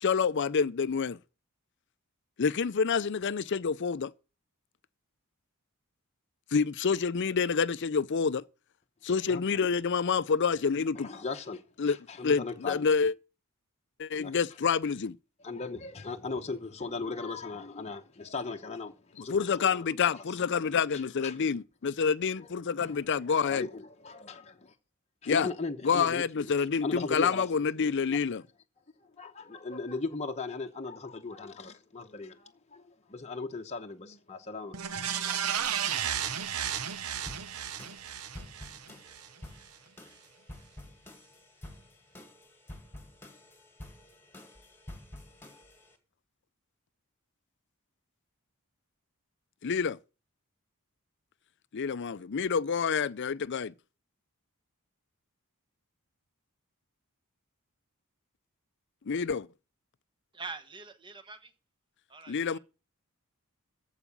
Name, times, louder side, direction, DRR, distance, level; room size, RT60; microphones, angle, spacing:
voice 1, 0.0-1.2 2.4-4.1 6.5-8.4 9.0-11.1 11.8-12.0 12.2-13.1 14.0-15.2 19.3-23.7 25.3-25.5 25.8-28.4 49.6-50.0 51.7-53.7 59.1-59.5 62.3-62.6, left 6 dB, 50° left, 0.5 m, -28 dB
voice 2, 9.3-9.7 11.0-12.8 14.2-14.3 15.4-19.9 20.1-20.4 20.9-21.4 22.4-22.5 22.8-23.0 23.4-24.7 25.2-28.2 29.0-35.4, left 3 dB, 30° left, 0.9 m, -38 dB
sound 1, 34.7-39.3 39.7-39.8, right 8 dB, 80° right, 0.9 m, -33 dB
sound 2, 37.3-46.0, left 1 dB, 10° left, 2.1 m, -49 dB
voice 3, 60.3-61.5 62.1-62.6, right 4 dB, 20° right, 1.2 m, -44 dB
14.5 x 5.0 x 8.4 m
head